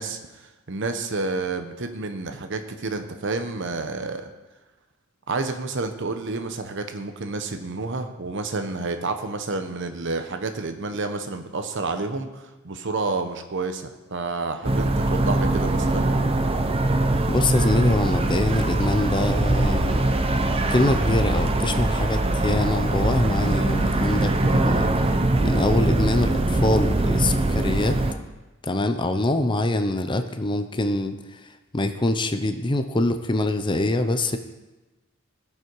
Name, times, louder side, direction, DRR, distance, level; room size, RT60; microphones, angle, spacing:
voice 1, 0.0-4.3 5.3-16.1, right 3 dB, 60° right, 7 dB, 0.9 m, -30 dB
sound 1, 14.6-28.1, right 2 dB, 30° right, 0.7 m, -22 dB
voice 2, 17.3-20.0 20.7-24.9 25.4-28.0 28.6-31.2 31.7-34.4, left 2 dB, 25° left, 8 dB, 0.6 m, -24 dB
16.5 x 5.6 x 4.7 m, 1.1 s
head